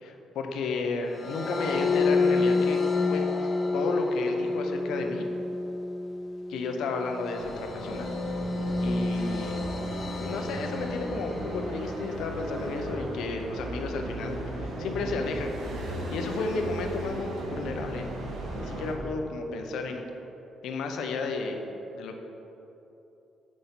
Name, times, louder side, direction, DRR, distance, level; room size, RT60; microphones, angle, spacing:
voice 1, 0.0-2.8 3.1-3.2 3.7-5.3 6.5-8.1 8.8-9.5 10.2-15.5 16.1-20.1 20.6-21.6 21.9-22.2, left 3 dB, 85° left, 4 dB, 0.7 m, -32 dB
sound 1, 1.1-12.5, left 3 dB, 35° left, 0.8 m, -29 dB
sound 2, 7.4-18.9, right 1 dB, 85° right, 1.4 m, -36 dB
6.2 x 5.2 x 5.7 m, 3.0 s
cardioid pair, 160°, 0 cm